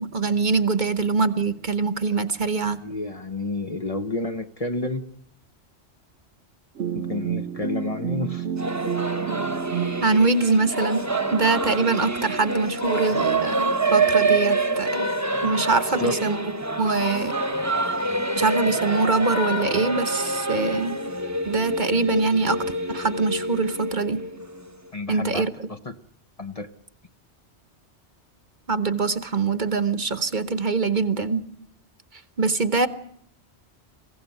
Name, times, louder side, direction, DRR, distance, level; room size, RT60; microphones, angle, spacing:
voice 1, 0.0-2.8 10.0-11.0 11.3-15.1 15.4-16.4 16.8-17.4 18.3-21.0 21.4-24.2 25.1-25.7 28.7-31.4 32.4-32.9, right 4 dB, 45° right, 12 dB, 1.1 m, -23 dB
voice 2, 2.8-5.0 6.9-8.5 16.0-16.2 24.9-25.9 26.4-26.7, left 2 dB, 35° left, 8 dB, 0.9 m, -30 dB
sound 1, 6.8-10.1, right 8 dB, 75° right, 1.3 m, -29 dB
Singing / Musical instrument, 8.6-24.9, right 2 dB, 15° right, 1.2 m, -26 dB
22.5 x 16.0 x 9.3 m, 0.73 s
omnidirectional pair, 1.2 m